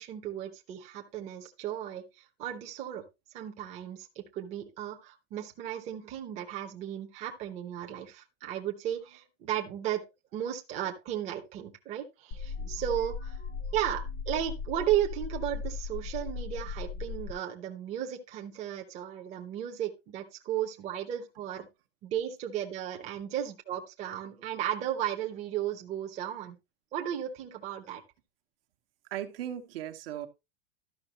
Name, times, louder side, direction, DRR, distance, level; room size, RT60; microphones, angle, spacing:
voice 1, 0.0-3.0 3.3-10.0 10.3-13.4 13.7-21.7 22.0-26.6 26.9-28.0, right 11 dB, 20° right, 0.8 m, -35 dB
sound 1, 12.3-17.3, left 5 dB, 30° left, 0.6 m, -37 dB
voice 2, 29.1-30.3, right 11 dB, 65° right, 1.2 m, -37 dB
12.5 x 5.7 x 2.9 m
supercardioid pair, 170°, 32 cm